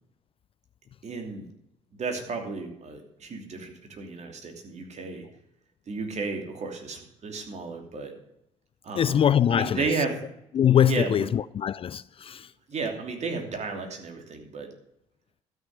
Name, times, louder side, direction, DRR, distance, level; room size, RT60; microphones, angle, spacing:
voice 1, 1.0-1.4 2.0-5.2 5.9-8.1 8.8-9.2 9.5-10.2 10.8-11.3 12.7-14.7, right 4 dB, 45° right, 2.8 m, -33 dB
voice 2, 9.0-9.9 10.5-12.5, left 9 dB, 35° left, 0.4 m, -23 dB
12.5 x 6.4 x 8.0 m
figure-of-eight pair, 50°, 16 cm